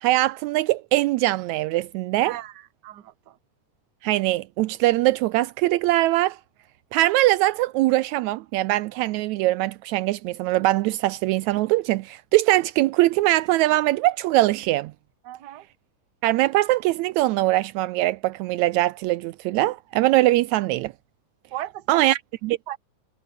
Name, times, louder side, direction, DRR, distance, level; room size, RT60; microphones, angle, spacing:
voice 1, 0.0-2.3 4.0-6.4 6.9-14.9 16.2-20.9 21.9-22.6, right 17 dB, 80° right, 1.8 m, -22 dB
voice 2, 2.2-3.4 15.2-15.7 21.5-22.1 22.7-22.8, right 13 dB, 50° right, 1.4 m, -37 dB
omnidirectional pair, 3.4 m